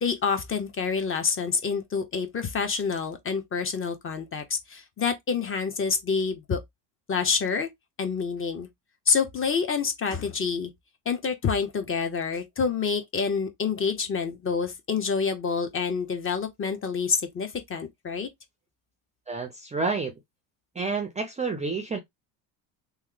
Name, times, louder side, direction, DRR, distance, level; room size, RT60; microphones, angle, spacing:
voice 1, 0.0-6.6 7.1-7.7 8.0-8.7 9.1-10.7 11.1-18.3, left 5 dB, 25° left, 0.8 m, -27 dB
voice 2, 19.3-20.1 20.8-22.0, right 4 dB, 15° right, 0.5 m, -29 dB
3.1 x 2.1 x 3.7 m
supercardioid pair, 115°, 49 cm